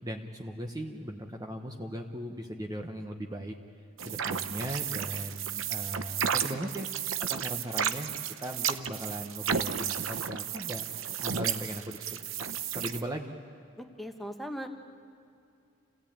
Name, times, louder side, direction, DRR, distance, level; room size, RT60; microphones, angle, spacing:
voice 1, 0.0-3.5 4.0-6.9 7.2-13.4, equal, 20° right, 2 dB, 1.0 m, -38 dB
sound 1, 4.0-13.0, right 8 dB, 80° right, 0.8 m, -33 dB
voice 2, 13.8-14.7, equal, ahead, 4 dB, 1.3 m, -39 dB
28.5 x 17.0 x 8.8 m, 2.5 s
head